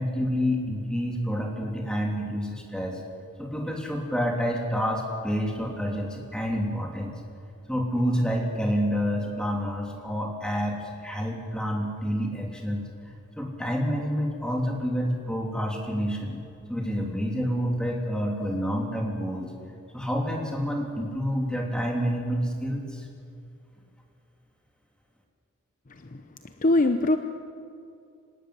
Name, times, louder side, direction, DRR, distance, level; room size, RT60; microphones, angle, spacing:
voice 1, 0.0-3.0 3.4-7.1 7.7-12.9 13.4-16.4 16.7-19.5 19.9-23.1, equal, 5° left, 0 dB, 3.0 m, -28 dB
voice 2, 26.6-27.2, left 2 dB, 35° left, 7 dB, 0.8 m, -21 dB
26.5 x 13.0 x 9.8 m, 2.5 s
head